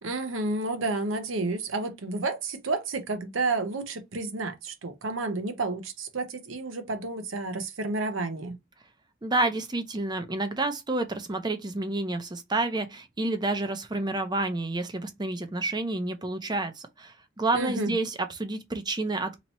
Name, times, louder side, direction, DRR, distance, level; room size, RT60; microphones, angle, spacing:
voice 1, 0.0-8.6 17.5-17.9, right 3 dB, 75° right, 0.8 m, -30 dB
voice 2, 9.2-19.4, right 2 dB, 20° right, 0.6 m, -29 dB
2.9 x 2.8 x 4.1 m
head